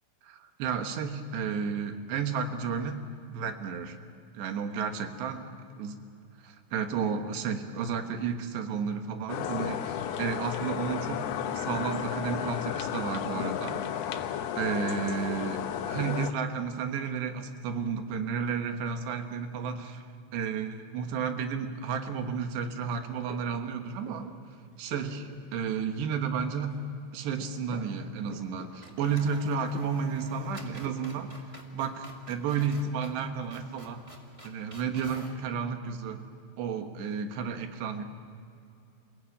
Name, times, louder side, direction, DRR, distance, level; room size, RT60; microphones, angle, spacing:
voice 1, 0.3-3.0 3.3-4.0 4.3-5.5 5.8-5.9 6.7-13.9 14.1-14.3 14.6-20.1 20.3-24.3 24.8-26.7 27.1-31.3 31.7-34.0 34.4-36.2 36.6-38.0, right 6 dB, 80° right, 6 dB, 3.6 m, -32 dB
sound 1, 9.3-16.3, left 10 dB, 75° left, 2.7 m, -33 dB
sound 2, 23.3-24.4 24.7-26.2 26.5-29.1 29.6-31.3, right 1 dB, 35° right, 5.5 m, -49 dB
sound 3, 25.8-26.5 26.8-26.9 28.4-28.5 28.8-35.4, right 1 dB, 15° right, 1.1 m, -50 dB
28.5 x 16.5 x 8.7 m, 2.5 s
omnidirectional pair, 4.9 m